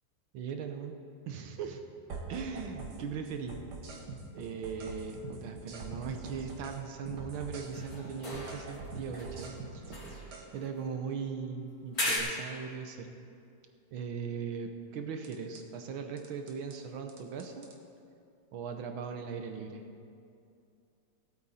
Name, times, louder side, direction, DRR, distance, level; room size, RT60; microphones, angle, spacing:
voice 1, 0.3-1.0 1.3-1.8 2.3-3.6 4.3-10.0 10.5-13.1 13.9-17.7 18.5-19.8, right 6 dB, 75° right, 5 dB, 1.7 m, -39 dB
sound 1, 2.1-3.0 3.2-6.8 7.1-10.4 15.2-15.6 16.2-16.8 17.1-17.8, right 4 dB, 55° right, 1.8 m, -44 dB
sound 2, 7.7-8.9 9.1-11.2 11.9-12.2, left 1 dB, 45° left, 2.8 m, -38 dB
18.5 x 8.7 x 4.2 m, 2.5 s
omnidirectional pair, 2.3 m